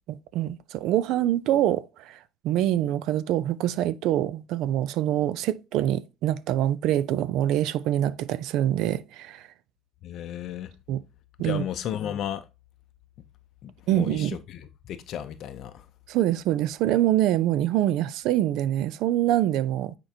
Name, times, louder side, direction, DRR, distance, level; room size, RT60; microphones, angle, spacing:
voice 1, 0.1-2.2 2.4-9.5 10.9-11.0 11.4-11.6 13.9-14.4 16.1-19.9, right 12 dB, 70° right, 0.5 m, -25 dB
voice 2, 10.0-10.7 11.4-12.5 13.6-15.9, left 10 dB, 55° left, 0.5 m, -34 dB
8.9 x 4.5 x 2.8 m
cardioid pair, 125°, 0 cm